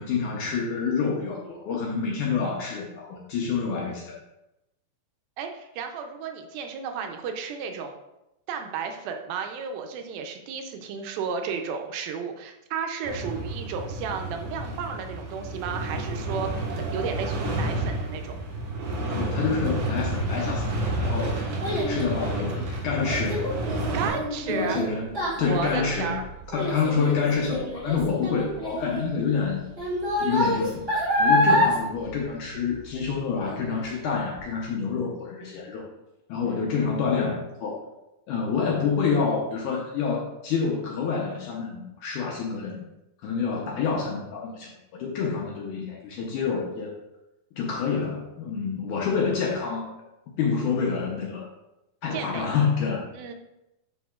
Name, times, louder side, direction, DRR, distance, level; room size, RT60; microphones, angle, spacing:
voice 1, 0.0-4.2 19.2-21.4 21.9-23.5 24.5-25.1 25.4-26.2 26.5-29.6 30.2-35.8 36.3-37.8 38.3-42.8 43.2-46.9 47.6-49.9 50.4-51.5 52.0-53.1, left 5 dB, 75° left, -2 dB, 1.9 m, -27 dB
voice 2, 5.4-8.0 8.5-18.3 23.9-24.8 25.5-26.2 52.1-52.5 53.2-53.3, right 6 dB, 80° right, 5 dB, 2.4 m, -33 dB
sound 1, 13.0-24.1, right 2 dB, 65° right, 2.4 m, -30 dB
Child speech kid speaking, 20.5-33.1 33.4-33.9 34.4-34.5, equal, 30° right, 1.1 m, -27 dB
10.0 x 4.4 x 2.4 m, 0.90 s
omnidirectional pair, 4.3 m